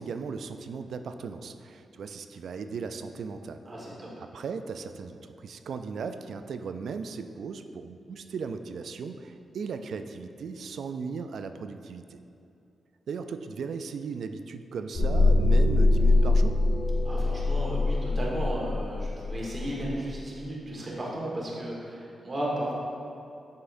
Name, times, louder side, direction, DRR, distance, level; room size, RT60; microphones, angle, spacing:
voice 1, 0.0-3.6 4.2-12.2 13.1-16.6, right 5 dB, 75° right, 8 dB, 0.3 m, -37 dB
voice 2, 3.6-4.1 17.0-22.7, right 1 dB, 40° right, -4 dB, 1.4 m, -34 dB
sound 1, 14.9-19.9, left 2 dB, 60° left, 1.3 m, -23 dB
7.9 x 5.6 x 2.6 m, 2.7 s
cardioid pair, 95°, 0 cm